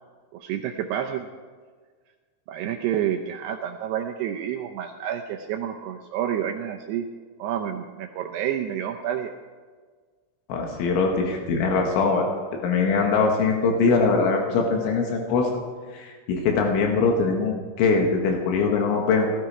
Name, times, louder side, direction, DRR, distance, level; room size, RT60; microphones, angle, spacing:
voice 1, 0.3-1.3 2.5-7.1 7.4-9.3, right 10 dB, 80° right, 3 dB, 2.5 m, -29 dB
voice 2, 10.5-12.3 12.6-15.5 15.9-19.3, left 4 dB, 85° left, 1 dB, 4.1 m, -22 dB
19.0 x 13.0 x 4.9 m, 1.5 s
omnidirectional pair, 5.3 m